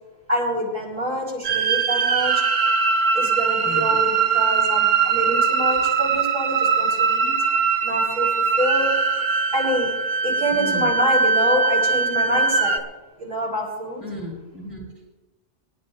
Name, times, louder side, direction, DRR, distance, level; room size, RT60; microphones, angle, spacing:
voice 1, 0.3-2.4 3.1-7.3 7.8-8.3 8.6-8.9 9.5-9.9 10.2-12.8 13.2-14.0, equal, 45° right, -6 dB, 5.5 m, -26 dB
sound 1, 1.4-12.8, right 5 dB, 90° right, 1.3 m, -21 dB
voice 2, 10.5-10.9 14.0-14.9, equal, 15° right, -4 dB, 5.6 m, -35 dB
24.0 x 12.0 x 2.6 m, 1.1 s
omnidirectional pair, 1.2 m